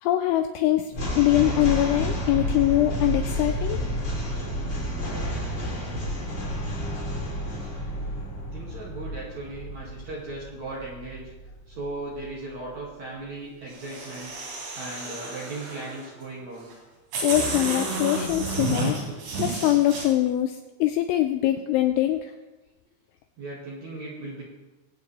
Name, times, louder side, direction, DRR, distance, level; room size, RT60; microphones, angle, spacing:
voice 1, 0.0-3.8 17.2-19.0 19.4-22.3, left 14 dB, 85° left, 7 dB, 2.7 m, -23 dB
sound 1, 0.9-12.2, equal, 30° left, 3.8 m, -30 dB
voice 2, 8.5-11.3 11.7-14.3 14.7-16.7 23.4-24.4, right 2 dB, 45° right, -5 dB, 2.7 m, -37 dB
sound 2, 13.7-16.0 16.7-16.8 17.1-20.0, right 2 dB, 85° right, 5.9 m, -31 dB
23.0 x 8.5 x 3.4 m, 1.1 s
omnidirectional pair, 5.9 m